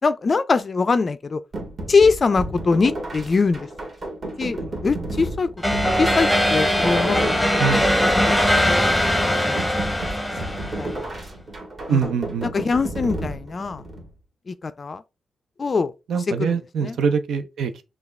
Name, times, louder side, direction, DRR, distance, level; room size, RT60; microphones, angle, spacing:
voice 1, 0.0-1.4 1.9-3.7 4.4-5.5 5.9-7.3 7.9-9.6 10.8-11.1 11.9-12.1 12.5-13.8 14.5-15.0 15.6-15.9 16.3-17.0, left 4 dB, 35° left, 0.4 m, -23 dB
sound 1, 1.5-14.1, right 1 dB, 40° right, 1.6 m, -33 dB
sound 2, 5.6-11.1, equal, ahead, 0.8 m, -21 dB
voice 2, 11.9-12.5 16.1-17.8, right 6 dB, 80° right, 0.6 m, -23 dB
5.8 x 2.3 x 3.2 m
wide cardioid pair, 135°, 0 cm